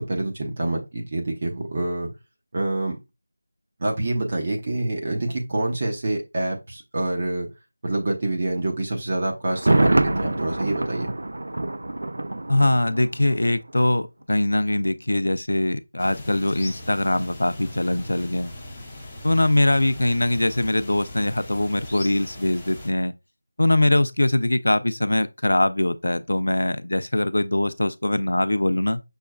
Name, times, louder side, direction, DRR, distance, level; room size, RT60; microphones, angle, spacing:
voice 1, 0.0-2.1 2.5-3.0 3.8-7.5 7.8-11.1, right 2 dB, 30° right, 0.8 m, -26 dB
Thunder, 9.5-13.4 13.7-13.8, right 2 dB, 65° right, 0.3 m, -25 dB
voice 2, 12.5-18.5 19.2-23.1 23.6-29.0, left 1 dB, 85° left, 0.3 m, -22 dB
sound 1, 16.0-22.9, left 1 dB, 10° left, 0.6 m, -39 dB
6.1 x 2.3 x 2.2 m
figure-of-eight pair, 175°, 0 cm